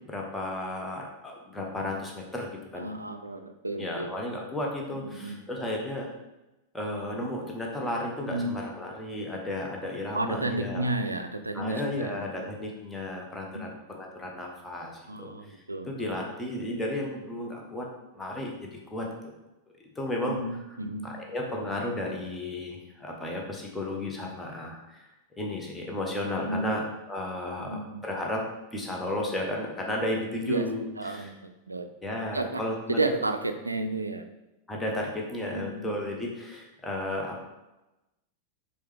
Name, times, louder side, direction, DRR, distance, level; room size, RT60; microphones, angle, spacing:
voice 1, 0.0-2.9 3.8-6.1 6.7-10.9 11.5-15.6 15.9-17.9 18.1-18.6 18.9-19.1 20.0-20.4 21.0-25.1 25.4-28.4 28.7-31.3 32.0-33.0 34.7-37.4, left 1 dB, 10° left, -1 dB, 0.9 m, -33 dB
voice 2, 2.8-4.2 4.9-5.4 8.2-8.6 10.1-12.2 13.5-13.7 15.1-15.9 20.3-21.2 26.4-26.8 27.6-28.0 30.4-31.9 32.3-32.6 32.9-34.2 35.4-36.0, right 2 dB, 80° right, 8 dB, 0.3 m, -32 dB
4.8 x 3.3 x 3.4 m, 1.0 s
figure-of-eight pair, 90°, 0 cm